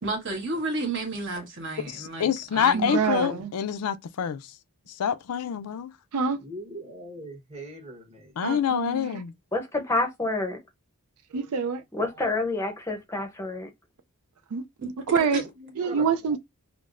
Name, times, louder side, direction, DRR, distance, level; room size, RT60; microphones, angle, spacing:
voice 1, 0.0-3.4 15.3-15.4, right 2 dB, 55° right, 1.2 m, -32 dB
voice 2, 1.9-4.4 5.0-5.9 8.4-9.3, left 8 dB, 85° left, 0.4 m, -26 dB
voice 3, 2.7-3.5 6.1-6.4 8.4-9.2 11.3-11.8 14.5-15.4 15.8-16.4, right 5 dB, 85° right, 0.4 m, -26 dB
voice 4, 6.4-8.4 15.4-16.4, right 1 dB, 25° right, 1.0 m, -42 dB
voice 5, 9.5-10.6 11.9-13.7, left 2 dB, 15° left, 0.6 m, -28 dB
5.8 x 2.0 x 2.5 m
head